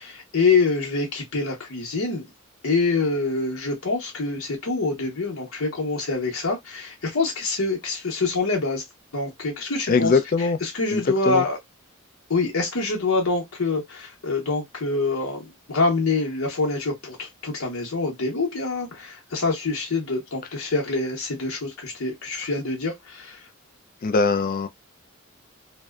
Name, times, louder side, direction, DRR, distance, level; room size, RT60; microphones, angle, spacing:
voice 1, 0.0-2.3 2.6-8.8 9.1-10.1 10.4-11.6 12.3-23.4, left 3 dB, 80° left, 0.9 m, -25 dB
voice 2, 9.9-10.6 10.9-11.4 24.0-24.7, left 4 dB, 40° left, 0.4 m, -21 dB
2.6 x 2.1 x 2.3 m
head